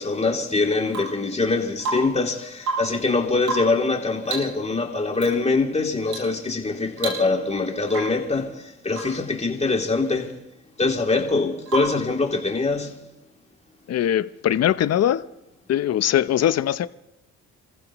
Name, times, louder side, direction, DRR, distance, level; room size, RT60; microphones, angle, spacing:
voice 1, 0.0-10.3 10.8-12.9, left 3 dB, 20° left, 2.9 m, -23 dB
Rain / Water tap faucet / Drip, 0.9-1.3 1.8-2.3 2.6-3.0 3.4-3.9 4.2-4.6 5.1-5.3 6.1-6.4 6.6-6.7 7.0-7.5 7.9-8.3 8.9-9.2 11.7-12.1 14.0-14.1, right 3 dB, 70° right, 7.3 m, -31 dB
voice 2, 13.9-15.2 15.7-16.9, left 11 dB, 55° left, 0.7 m, -21 dB
28.5 x 15.0 x 3.0 m
cardioid pair, 90°, 30 cm